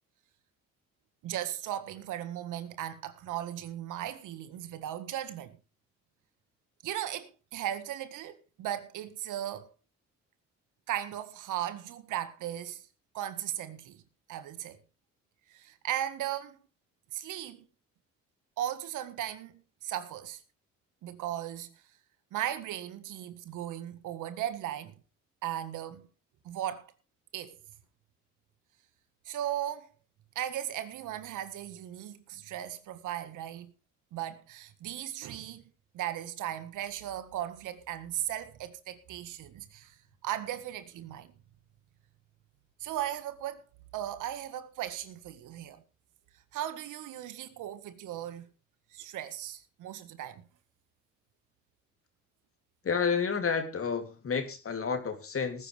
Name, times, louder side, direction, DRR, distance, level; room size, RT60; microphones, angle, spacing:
voice 1, 1.2-5.6 6.8-9.7 10.9-12.8 13.1-14.0 14.3-14.8 15.5-16.6 17.1-17.6 18.6-20.4 21.0-21.7 22.3-25.0 25.4-26.1 26.4-26.9 27.3-27.6 29.3-29.9 30.4-33.7 34.1-35.7 35.9-40.0 40.2-41.3 42.8-43.6 43.9-45.8 46.5-48.5 48.9-50.4, right 12 dB, 90° right, 1.8 m, -37 dB
voice 2, 52.8-55.7, left 6 dB, 45° left, 3.2 m, -30 dB
19.5 x 10.0 x 3.5 m
cardioid pair, 90°, 30 cm